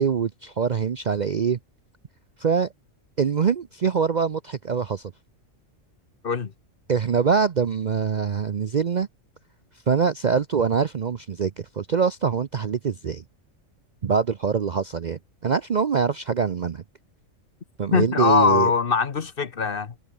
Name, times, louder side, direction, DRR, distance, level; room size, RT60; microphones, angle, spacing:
voice 1, 0.0-1.6 2.4-2.7 3.2-5.1 6.9-9.1 9.9-13.2 14.0-16.8 17.8-18.7, right 6 dB, 45° right, 0.6 m, -24 dB
voice 2, 17.9-19.9, left 5 dB, 45° left, 1.2 m, -21 dB
omnidirectional pair, 1.3 m